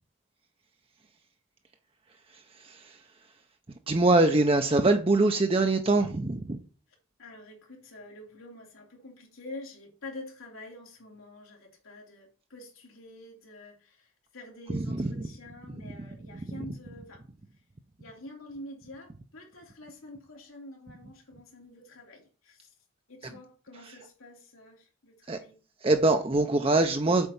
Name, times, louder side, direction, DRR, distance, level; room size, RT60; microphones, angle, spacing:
voice 1, 3.9-6.6 14.7-15.3 15.8-15.9 16.3-16.4 25.3-25.4 25.8-27.3, right 2 dB, 25° right, 0.5 m, -23 dB
voice 2, 7.2-17.2 18.0-22.7 23.1-25.6, left 1 dB, 85° left, 3.0 m, -47 dB
8.0 x 4.3 x 7.0 m
head